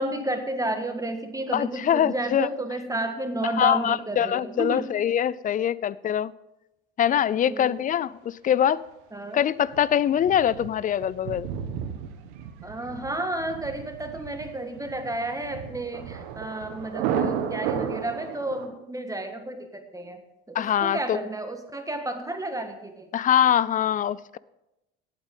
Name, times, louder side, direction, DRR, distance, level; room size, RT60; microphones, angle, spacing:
voice 1, 0.0-4.9 7.4-7.8 9.1-9.4 12.6-20.2 20.5-23.1, right 2 dB, 10° right, 6 dB, 1.5 m, -31 dB
voice 2, 1.5-2.5 3.6-6.3 7.0-8.8 9.3-11.5 20.5-21.2 23.1-24.4, left 10 dB, 25° left, 21 dB, 0.4 m, -23 dB
Thunder, 9.7-18.7, right 8 dB, 70° right, 1.4 m, -33 dB
17.5 x 8.2 x 3.8 m, 0.93 s
hypercardioid pair, 75°, 31 cm